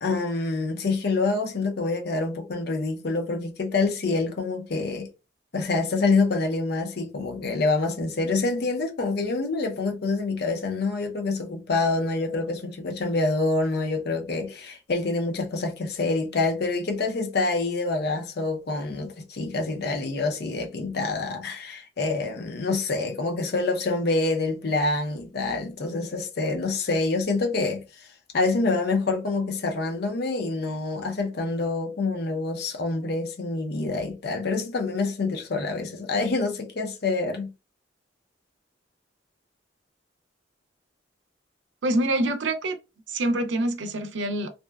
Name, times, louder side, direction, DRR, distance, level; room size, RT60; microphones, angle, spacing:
voice 1, 0.0-5.1 5.5-28.1 28.3-37.5, left 3 dB, 55° left, 0.5 m, -26 dB
voice 2, 41.8-42.8 43.1-44.5, right 1 dB, 75° right, 0.5 m, -25 dB
2.7 x 2.1 x 2.2 m
head